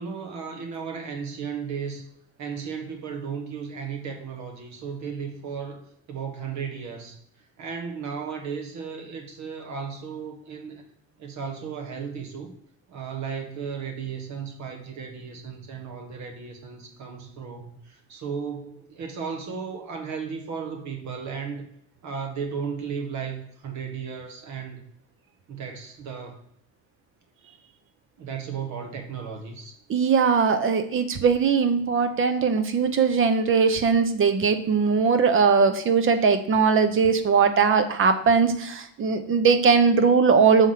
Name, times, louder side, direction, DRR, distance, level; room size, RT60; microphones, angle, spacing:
voice 1, 0.0-2.1 2.4-5.8 6.1-7.2 7.6-10.8 11.2-12.5 12.9-21.7 22.0-24.8 25.5-26.4 28.2-29.7, right 6 dB, 60° right, 3 dB, 1.5 m, -35 dB
voice 2, 29.9-40.7, right 5 dB, 40° right, 9 dB, 1.0 m, -20 dB
7.2 x 3.6 x 5.6 m, 0.71 s
supercardioid pair, 100°, 32 cm